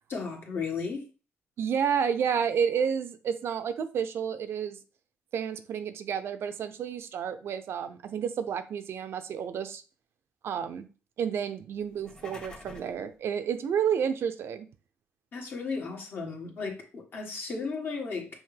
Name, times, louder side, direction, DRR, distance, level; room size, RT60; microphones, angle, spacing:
voice 1, 0.1-1.1 15.3-18.3, left 4 dB, 50° left, 1.5 m, -34 dB
voice 2, 1.6-4.8 5.3-9.8 10.4-10.9 11.2-14.7, right 7 dB, 65° right, 0.5 m, -30 dB
sound 1, 11.9-13.0, left 2 dB, 20° left, 1.2 m, -47 dB
5.6 x 2.6 x 3.3 m
cardioid pair, 100°, 5 cm